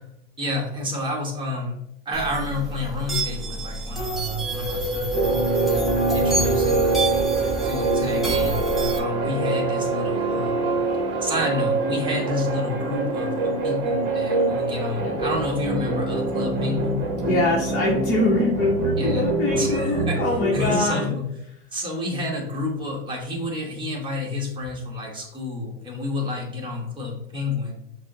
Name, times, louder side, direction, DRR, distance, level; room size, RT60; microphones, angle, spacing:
voice 1, 0.4-1.8 2.0-5.3 5.7-7.0 7.6-10.6 11.2-17.0 19.0-20.2 20.5-21.3 21.7-27.8, left 2 dB, 15° right, -1 dB, 1.1 m, -29 dB
sound 1, 2.1-9.0, right 1 dB, ahead, 0.7 m, -28 dB
sound 2, 5.1-20.9, right 3 dB, 45° right, 0.8 m, -24 dB
voice 2, 17.2-21.2, left 2 dB, 35° left, -3 dB, 0.8 m, -23 dB
6.0 x 2.0 x 2.7 m, 0.78 s
supercardioid pair, 130°, 29 cm